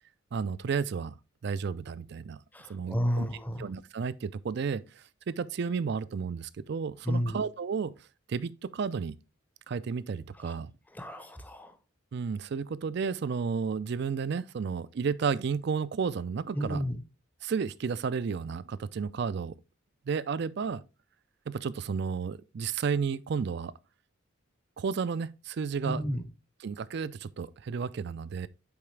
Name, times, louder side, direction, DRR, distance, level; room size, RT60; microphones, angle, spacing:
voice 1, 0.3-1.2 1.4-2.4 2.7-3.3 3.6-7.9 8.3-9.1 9.7-10.7 12.1-16.8 17.4-19.5 20.1-20.8 21.5-23.7 24.8-26.0 26.6-28.5, right 5 dB, 55° right, 0.4 m, -32 dB
voice 2, 2.5-3.6 7.1-7.4 10.5-10.6 11.0-11.7 16.5-17.0 25.8-26.2, equal, 10° left, 0.7 m, -31 dB
7.0 x 4.7 x 3.2 m
head